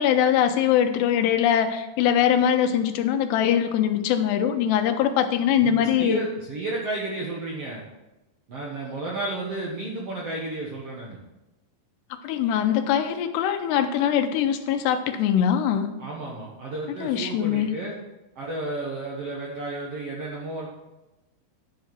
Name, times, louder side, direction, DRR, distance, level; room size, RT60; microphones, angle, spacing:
voice 1, 0.0-6.2 12.2-15.9 17.0-17.8, left 9 dB, 90° left, 7 dB, 2.9 m, -22 dB
voice 2, 5.6-7.8 8.5-11.2 16.0-17.9 18.3-20.7, right 2 dB, 80° right, -3 dB, 1.3 m, -32 dB
10.5 x 5.6 x 5.9 m, 0.99 s
omnidirectional pair, 4.8 m